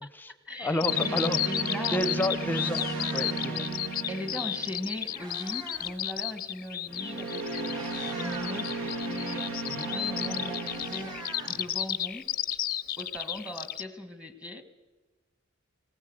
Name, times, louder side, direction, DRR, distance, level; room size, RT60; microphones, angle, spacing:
voice 1, 0.0-1.2 1.4-2.0 4.1-8.7 9.1-9.5 9.9-11.2 11.4-12.6 13.0-14.6, left 1 dB, 5° right, 8 dB, 1.5 m, -39 dB
voice 2, 0.6-1.4 1.9-2.9 3.1-3.7 9.6-9.9, left 1 dB, 10° left, 12 dB, 0.8 m, -30 dB
Bird vocalization bird call bird song, 0.8-13.8, left 12 dB, 45° left, 0.6 m, -33 dB
sound 1, 0.9-5.3 6.9-11.7, right 3 dB, 75° right, 2.9 m, -35 dB
Meow, 1.8-1.9 2.3-3.6 4.6-6.0 6.2-6.5 7.2-7.3 7.6-8.6 9.9-10.0 10.2-12.1, right 2 dB, 20° right, 3.1 m, -44 dB
19.5 x 18.5 x 7.9 m, 1.2 s
head